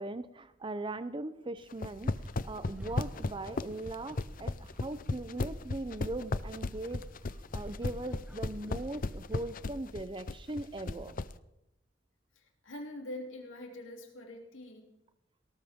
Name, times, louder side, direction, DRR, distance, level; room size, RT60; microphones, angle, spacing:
voice 1, 0.0-7.0 7.5-11.2, right 2 dB, 25° right, 13 dB, 0.6 m, -40 dB
sound 1, 1.7-11.3, left 3 dB, 45° left, 0.6 m, -35 dB
sound 2, 2.0-9.8, equal, 5° right, 1.0 m, -52 dB
voice 2, 12.3-14.9, left 1 dB, 90° left, 1 dB, 3.1 m, -44 dB
19.0 x 18.0 x 3.7 m, 0.84 s
head